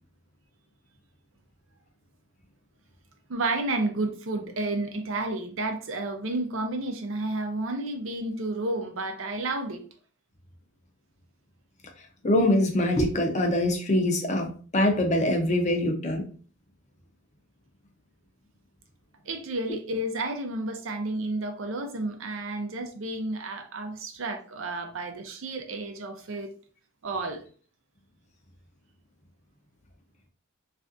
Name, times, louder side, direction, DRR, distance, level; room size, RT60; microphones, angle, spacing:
voice 1, 3.3-9.8 19.3-26.5 27.0-27.4, right 2 dB, 75° right, 0.6 m, -31 dB
voice 2, 12.2-16.2, left 1 dB, 35° left, 0.6 m, -24 dB
3.3 x 2.5 x 2.5 m
head